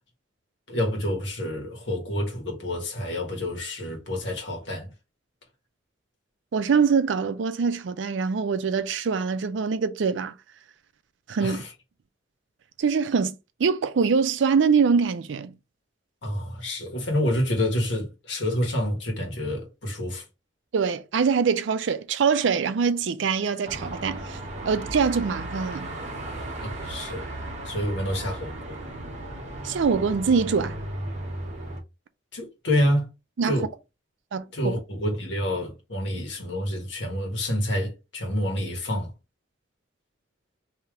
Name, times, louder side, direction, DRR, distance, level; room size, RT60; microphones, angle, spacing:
voice 1, 0.7-4.9 11.4-11.7 16.2-20.2 26.6-27.3 27.6-28.8 32.3-33.1 33.4-33.7 34.5-39.1, left 1 dB, 65° left, 1.4 m, -28 dB
voice 2, 6.5-10.3 11.3-11.6 12.8-15.5 20.7-24.4 24.7-25.9 29.6-30.8 33.4-33.6 34.3-34.5, right 5 dB, 70° right, 0.4 m, -24 dB
Car passing by / Traffic noise roadway noise / Engine, 23.6-31.8, right 1 dB, 35° right, 0.9 m, -35 dB
3.3 x 2.8 x 3.6 m
head